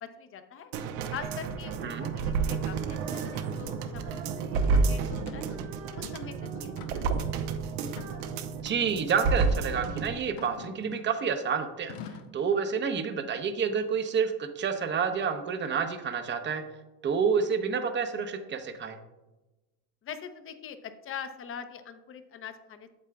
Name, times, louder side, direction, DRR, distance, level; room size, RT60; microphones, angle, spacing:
voice 1, 0.0-0.7 1.1-5.6 5.9-7.1 20.0-22.9, left 7 dB, 30° left, 9 dB, 0.7 m, -43 dB
sound 1, 0.7-10.2 10.5-10.6, right 5 dB, 70° right, 0.9 m, -30 dB
Female singing, 2.7-9.8, right 3 dB, 90° right, 2.3 m, -48 dB
sound 2, 4.6-4.7 5.3-5.5 5.9-6.3 6.8-7.2 7.9-8.6 9.4-9.6 10.4-11.2 11.9-12.4, left 6 dB, 85° left, 0.9 m, -45 dB
voice 2, 8.6-11.9 12.3-16.6 17.0-19.0, right 6 dB, 25° right, 7 dB, 0.8 m, -29 dB
8.4 x 7.3 x 2.3 m, 1.1 s
supercardioid pair, 110°, 45 cm